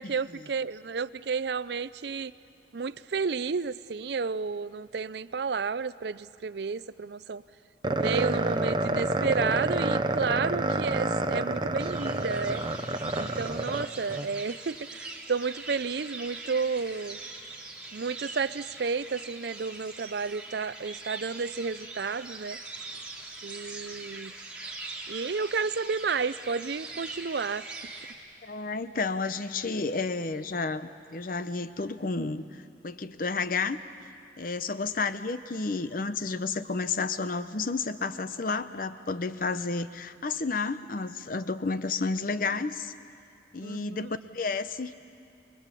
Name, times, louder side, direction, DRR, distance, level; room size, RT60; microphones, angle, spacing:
voice 1, 0.0-2.3 2.7-7.4 7.9-12.6 13.2-17.2 17.9-22.6 23.4-24.3 24.7-24.8 25.1-27.9 43.6-44.1, right 5 dB, 60° right, 17 dB, 0.5 m, -31 dB
sound 1, 7.8-14.3, right 2 dB, 25° right, 0.8 m, -28 dB
sound 2, 11.8-28.1, right 3 dB, 5° right, 2.5 m, -42 dB
voice 2, 28.4-32.5 32.8-33.8 34.4-42.9 43.5-44.9, left 4 dB, 45° left, 12 dB, 0.7 m, -31 dB
24.0 x 22.0 x 8.3 m, 2.4 s
head